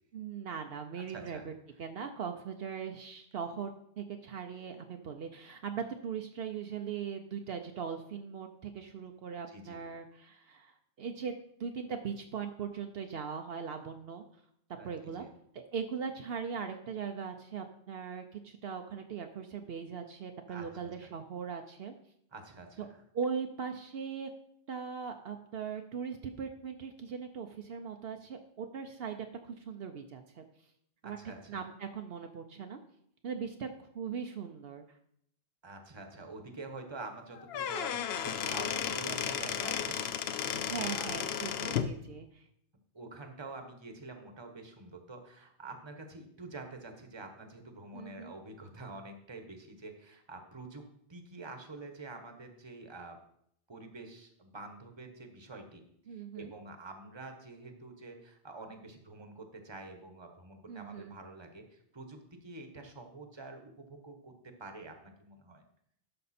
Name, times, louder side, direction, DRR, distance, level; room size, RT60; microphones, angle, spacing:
voice 1, 0.1-1.5 1.8-3.7 4.0-11.3 11.6-14.2 14.8-15.2 15.5-21.9 22.8-22.9 23.1-24.3 24.7-30.4 31.0-31.2 31.5-32.8 33.2-34.8 40.7-42.4 47.9-48.3 56.1-56.5 60.7-61.2, right 6 dB, 70° right, 5 dB, 0.9 m, -40 dB
voice 2, 1.0-1.5 9.5-9.8 14.7-15.3 20.5-21.1 22.3-23.0 31.0-31.6 35.6-41.2 42.9-53.2 53.7-55.8 56.1-65.6, right 3 dB, 25° right, 5 dB, 1.1 m, -47 dB
Squeak / Wood, 37.3-41.9, left 8 dB, 75° left, 0.9 m, -34 dB
12.0 x 5.3 x 4.2 m, 0.71 s
omnidirectional pair, 1.1 m